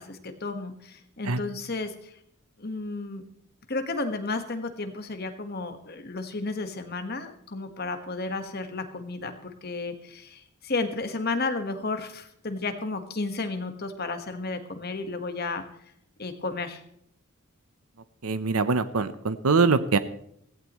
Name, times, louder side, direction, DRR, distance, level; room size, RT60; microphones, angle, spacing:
voice 1, 0.0-2.1 2.6-3.2 3.7-15.6 16.2-16.8, left 3 dB, 45° left, 7 dB, 1.5 m, -32 dB
voice 2, 18.2-20.0, right 4 dB, 90° right, 13 dB, 0.8 m, -23 dB
16.5 x 15.5 x 3.1 m, 0.71 s
head